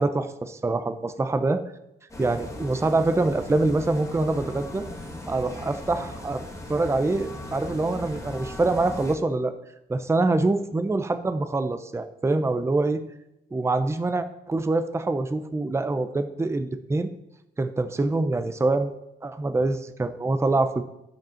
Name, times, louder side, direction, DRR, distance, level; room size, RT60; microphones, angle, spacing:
voice 1, 0.0-1.6 2.2-4.8 5.3-6.4 6.7-9.5 9.9-13.0 13.5-17.1 17.6-18.9 19.2-20.8, right 2 dB, 15° right, 9 dB, 0.6 m, -25 dB
sound 1, 2.1-9.1, left 1 dB, 15° left, 2.2 m, -38 dB
10.5 x 5.3 x 7.0 m, 0.85 s
cardioid pair, 90°, 20 cm